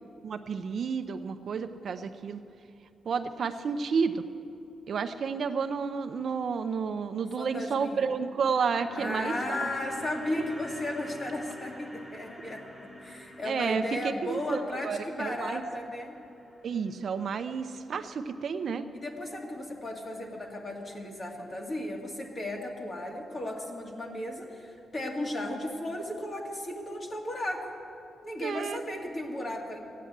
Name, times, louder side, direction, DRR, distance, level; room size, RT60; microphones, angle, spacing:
voice 1, 0.2-2.4 3.1-4.2 4.9-9.7 13.4-15.6 16.6-18.9 28.4-28.8, right 5 dB, 55° right, 9 dB, 0.6 m, -31 dB
voice 2, 7.2-8.0 8.9-16.2 18.9-27.7 28.2-29.8, left 1 dB, 35° left, 0 dB, 2.2 m, -35 dB
sound 1, 8.3-18.4 18.7-18.8, equal, 10° left, 2.1 m, -46 dB
15.5 x 9.2 x 8.7 m, 2.8 s
cardioid pair, 125°, 0 cm